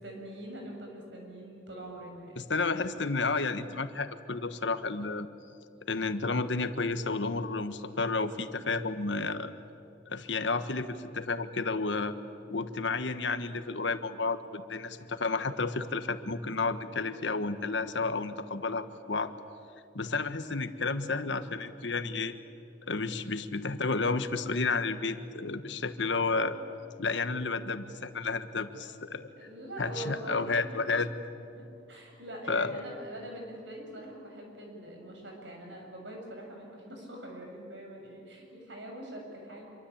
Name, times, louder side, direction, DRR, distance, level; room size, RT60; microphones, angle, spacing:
voice 1, 0.0-2.5 29.4-30.9 31.6-39.6, right 1 dB, 75° right, 1 dB, 7.3 m, -43 dB
voice 2, 2.4-5.3 5.9-9.5 10.1-12.1 12.5-19.3 19.9-22.3 22.9-26.6 27.0-29.2 29.8-31.1 32.5-32.8, left 3 dB, 75° left, 10 dB, 1.4 m, -31 dB
26.5 x 23.5 x 8.7 m, 2.5 s
head